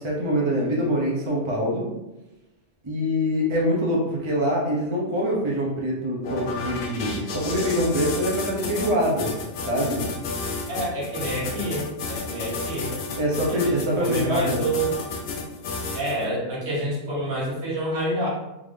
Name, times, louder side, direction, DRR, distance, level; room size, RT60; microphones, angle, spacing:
voice 1, 0.0-1.9 2.8-9.3 9.7-10.0 13.2-14.7, equal, 30° right, -4 dB, 0.6 m, -24 dB
sound 1, 6.2-16.2, left 4 dB, 90° left, 1.1 m, -31 dB
voice 2, 10.7-12.9 13.5-14.9 15.9-18.3, right 1 dB, 55° right, -5 dB, 1.4 m, -28 dB
3.6 x 2.6 x 3.2 m, 0.97 s
omnidirectional pair, 1.4 m